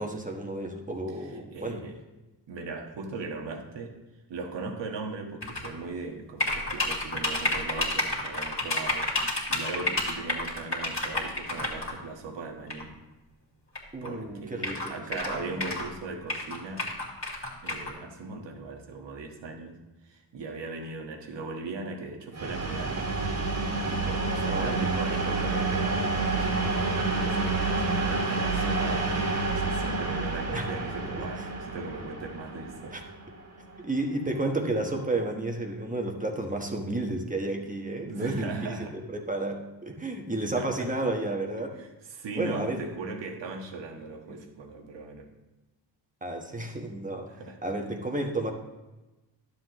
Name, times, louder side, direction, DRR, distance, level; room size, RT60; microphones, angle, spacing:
voice 1, 0.0-1.8 13.9-15.0 15.3-15.5 24.4-24.9 30.5-30.7 31.2-31.5 32.9-33.0 33.8-41.8 42.4-42.8 46.2-47.3 47.6-48.5, right 2 dB, 15° right, 2 dB, 1.2 m, -32 dB
voice 2, 1.2-1.9 2.5-3.9 4.3-9.1 9.5-12.9 14.0-16.9 17.6-23.2 23.9-33.0 38.0-39.0 40.5-40.9 41.6-45.3 47.3-47.6, right 3 dB, 70° right, 2 dB, 1.6 m, -39 dB
sound 1, 5.4-5.7 6.4-11.9 12.7-12.8 13.7-13.8 14.0-14.1 14.6-15.9 16.3-17.9, left 2 dB, 30° left, 2.5 m, -30 dB
sound 2, 22.3-34.0, right 3 dB, 35° right, 2.0 m, -29 dB
11.0 x 7.7 x 3.1 m, 1.1 s
cardioid pair, 100°, 45 cm